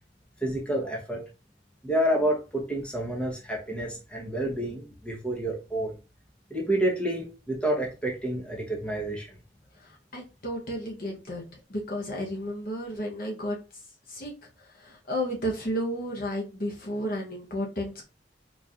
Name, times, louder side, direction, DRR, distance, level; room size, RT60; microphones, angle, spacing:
voice 1, 0.4-1.2 1.8-6.0 6.5-9.3, right 1 dB, 5° left, -2 dB, 1.0 m, -29 dB
voice 2, 10.1-11.4 11.7-13.6 14.1-14.3 14.8-18.0, equal, 50° left, 0 dB, 0.9 m, -32 dB
4.1 x 3.1 x 2.4 m, 0.32 s
head